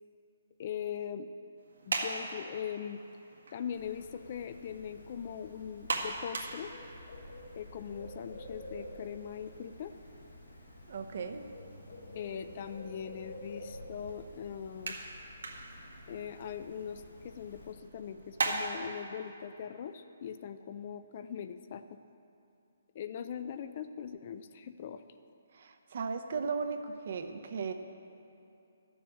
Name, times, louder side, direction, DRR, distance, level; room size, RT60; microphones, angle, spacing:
voice 1, 0.6-1.3 1.9-3.0 3.5-6.7 7.6-9.9 12.1-15.0 16.1-22.0 22.9-25.0, left 8 dB, 30° left, 11 dB, 0.3 m, -41 dB
sound 1, 1.6-18.7, right 3 dB, 75° right, 1.6 m, -42 dB
Bird, 3.7-17.7, left 1 dB, 85° left, 2.2 m, -50 dB
voice 2, 10.9-11.4 25.5-27.7, right 5 dB, 45° right, 6 dB, 0.7 m, -36 dB
12.0 x 7.1 x 8.5 m, 2.7 s
hypercardioid pair, 175°, 0 cm